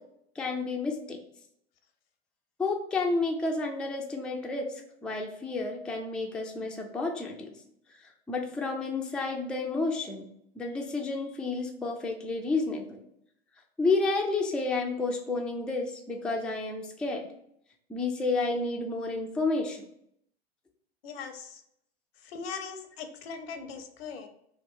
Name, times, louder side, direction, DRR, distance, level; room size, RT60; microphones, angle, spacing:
voice 1, 0.4-1.2 2.6-4.7 5.0-7.6 8.3-10.2 10.6-13.0 13.8-17.3 17.9-19.9, left 3 dB, 5° left, 1 dB, 0.3 m, -30 dB
voice 2, 21.0-21.6 22.2-24.3, left 5 dB, 70° left, 7 dB, 0.7 m, -40 dB
3.1 x 2.1 x 3.6 m, 0.72 s
hypercardioid pair, 95°, 30 cm